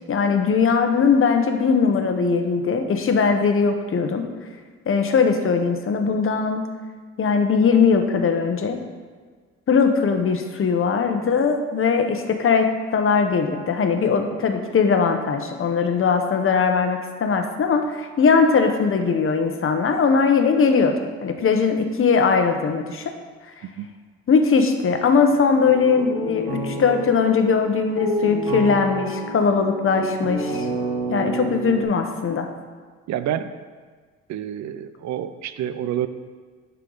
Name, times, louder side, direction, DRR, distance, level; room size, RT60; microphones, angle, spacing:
voice 1, 0.1-4.3 4.9-6.6 7.2-8.8 9.7-23.1 24.3-30.7 31.1-32.5, left 5 dB, 45° left, 5 dB, 0.9 m, -20 dB
sound 1, 25.6-31.8, right 1 dB, 85° right, 1.4 m, -28 dB
voice 2, 33.1-33.5 34.3-36.1, right 11 dB, 65° right, 12 dB, 0.5 m, -28 dB
11.0 x 4.6 x 3.9 m, 1.6 s
cardioid pair, 90°, 30 cm